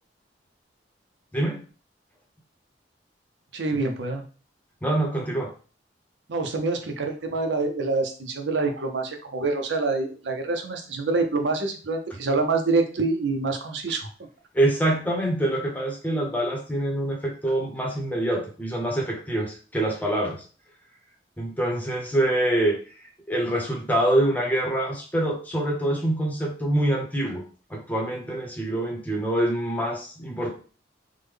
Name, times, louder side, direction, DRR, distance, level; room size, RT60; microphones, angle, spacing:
voice 1, 3.5-4.2 6.3-14.1, right 3 dB, 85° right, 5 dB, 0.6 m, -26 dB
voice 2, 4.8-5.5 14.5-20.4 21.4-22.8 23.3-27.4 27.7-30.5, right 1 dB, 10° left, 0 dB, 0.8 m, -25 dB
3.5 x 2.1 x 3.3 m, 0.38 s
head